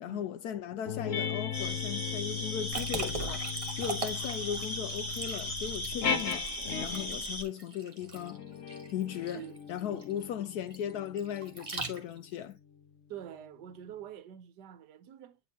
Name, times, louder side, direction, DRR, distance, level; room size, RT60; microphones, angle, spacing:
voice 1, 0.0-3.5 3.7-6.5 6.8-8.4 8.9-12.6, left 9 dB, 75° left, 0.9 m, -37 dB
sound 1, 0.9-7.3 8.0-12.9, left 7 dB, 50° left, 1.2 m, -38 dB
sound 2, 1.5-7.4, left 1 dB, 15° left, 1.1 m, -37 dB
Liquid, 2.7-12.4, right 3 dB, 20° right, 1.3 m, -41 dB
voice 2, 9.9-10.2 13.1-15.4, right 10 dB, 65° right, 1.3 m, -46 dB
9.1 x 4.2 x 2.8 m
omnidirectional pair, 2.1 m